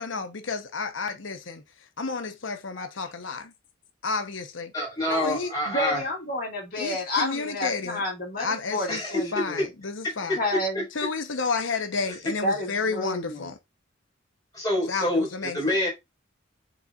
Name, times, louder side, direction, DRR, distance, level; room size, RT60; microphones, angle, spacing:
voice 1, 0.0-1.6 2.0-3.5 4.0-4.7 5.1-5.5 6.8-8.0 8.4-9.0 9.3-10.4 10.9-13.6 14.9-15.6, left 4 dB, 75° left, 0.9 m, -31 dB
voice 2, 4.7-6.0 8.9-9.3 9.6-9.7 10.3-10.4 11.0-11.1 14.5-15.9, left 1 dB, 20° left, 4.0 m, -26 dB
voice 3, 5.7-9.6 10.4-10.8 12.4-13.5, left 1 dB, 45° left, 2.2 m, -30 dB
10.0 x 4.0 x 2.4 m
head